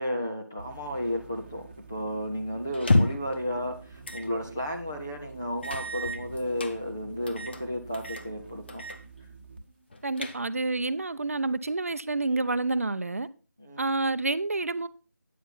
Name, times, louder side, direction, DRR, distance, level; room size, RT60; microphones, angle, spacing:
voice 1, 0.0-8.8 13.6-13.9, equal, 10° left, 0.4 m, -33 dB
sound 1, 0.6-9.7, right 4 dB, 35° right, 1.0 m, -48 dB
sound 2, 2.7-3.3 4.0-4.3 4.7-4.8 5.6-6.7 7.3-7.6 7.9-8.3 8.7-9.0 9.3-9.4 9.9-10.7, left 2 dB, 35° left, 0.9 m, -28 dB
voice 2, 10.0-13.3 13.8-14.9, right 2 dB, 50° right, 0.6 m, -28 dB
9.2 x 7.9 x 4.1 m
figure-of-eight pair, 165°, 10 cm